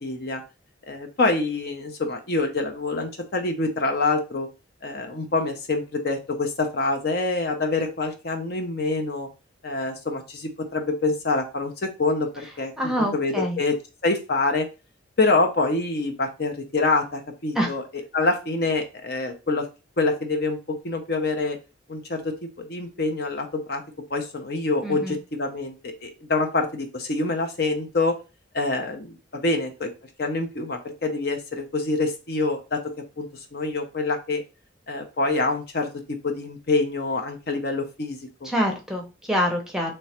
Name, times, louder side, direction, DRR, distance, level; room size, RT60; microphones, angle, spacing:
voice 1, 0.0-0.4 0.9-4.5 4.8-9.3 9.6-12.3 12.6-13.8 14.0-14.7 15.2-17.8 18.1-19.7 20.0-21.6 21.9-23.8 24.1-28.2 28.5-29.9 30.2-32.8 33.2-34.4 34.9-35.9 36.2-38.5, left 3 dB, 50° left, 4 dB, 0.7 m, -26 dB
voice 2, 12.8-13.6 17.5-17.7 24.8-25.2 38.4-39.9, equal, 5° right, 1 dB, 0.7 m, -25 dB
3.3 x 3.0 x 4.2 m, 0.30 s
head